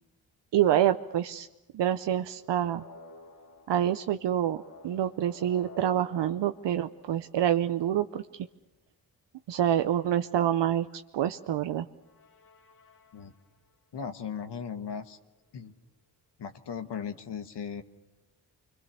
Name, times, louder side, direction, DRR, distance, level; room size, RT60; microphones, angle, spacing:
voice 1, 0.5-1.5 1.7-2.8 3.7-8.3 9.5-11.9, right 11 dB, 80° right, 9 dB, 0.7 m, -27 dB
sound 1, 2.4-7.7 12.0-13.7, left 2 dB, 50° left, 2.3 m, -52 dB
voice 2, 13.9-15.2 15.5-15.7 16.4-17.8, left 7 dB, 70° left, 8 dB, 1.4 m, -37 dB
26.0 x 22.5 x 6.9 m, 1.0 s
cardioid pair, 55°, 42 cm